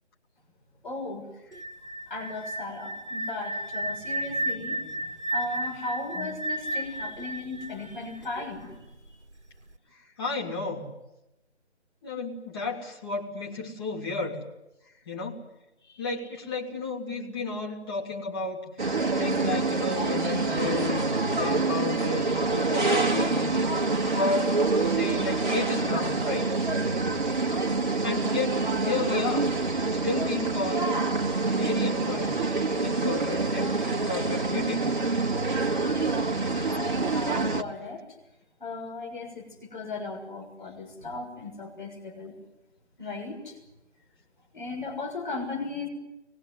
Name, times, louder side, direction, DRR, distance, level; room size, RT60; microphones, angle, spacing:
voice 1, 0.8-1.3 2.1-9.2 36.7-38.0 38.6-42.3 43.0-43.6 44.5-45.9, left 3 dB, 45° left, 1 dB, 6.5 m, -37 dB
sound 1, 1.5-8.4, right 1 dB, 75° right, 1.5 m, -33 dB
voice 2, 10.2-10.9 12.0-14.4 15.0-15.4 15.9-18.6 19.2-21.0 21.3-23.7 24.0-24.6 24.8-26.5 28.0-29.5 29.9-31.0 31.5-32.4 32.8-35.0, left 3 dB, 20° left, -3 dB, 3.2 m, -32 dB
sound 2, 18.8-37.6, right 3 dB, 40° right, 1.6 m, -26 dB
24.0 x 20.5 x 9.6 m, 0.91 s
figure-of-eight pair, 155°, 35 cm